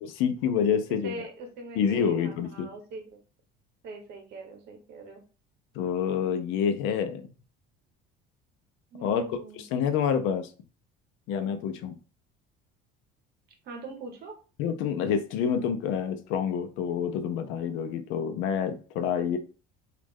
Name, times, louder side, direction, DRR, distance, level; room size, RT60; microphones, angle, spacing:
voice 1, 0.0-1.1 1.8-2.7 5.7-7.3 9.0-9.2 9.5-10.5 11.3-12.0 14.6-19.4, left 7 dB, 75° left, 0.6 m, -27 dB
voice 2, 0.9-3.0 3.8-5.2 8.9-9.6 13.6-14.4, right 2 dB, 50° right, 1.0 m, -41 dB
3.1 x 2.5 x 3.5 m
cardioid pair, 150°, 21 cm